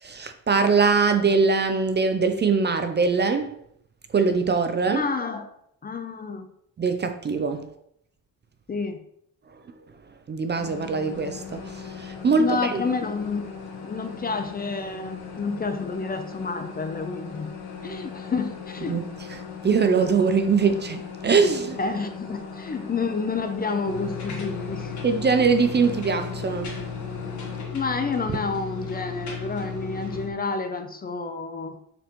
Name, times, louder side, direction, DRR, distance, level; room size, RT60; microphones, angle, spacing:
voice 1, 0.0-3.5 4.1-5.0 6.8-7.6 10.3-12.9 18.9-19.0 19.3-21.8 25.0-26.8, right 5 dB, 30° right, 0.4 m, -22 dB
voice 2, 4.8-5.5 5.8-6.5 8.7-9.0 12.4-13.4 13.8-17.5 17.8-19.0 21.8-25.0 27.7-31.8, left 4 dB, 25° left, 0.5 m, -29 dB
sound 1, 10.6-27.6, left 6 dB, 85° left, 1.5 m, -39 dB
sound 2, 23.9-30.3, left 5 dB, 50° left, 1.5 m, -35 dB
6.8 x 6.1 x 3.0 m
cardioid pair, 160°, 37 cm